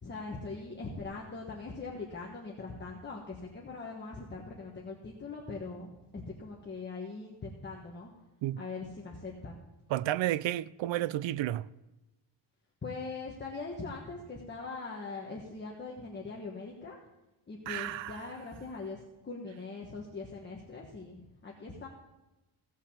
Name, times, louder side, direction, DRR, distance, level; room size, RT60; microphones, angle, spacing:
voice 1, 0.0-8.1 8.6-9.6 12.8-17.0 17.5-21.9, left 3 dB, 20° left, 1.3 m, -41 dB
voice 2, 9.9-11.7 17.7-18.3, right 14 dB, 65° right, 0.5 m, -32 dB
16.5 x 5.6 x 7.1 m
wide cardioid pair, 170°, 49 cm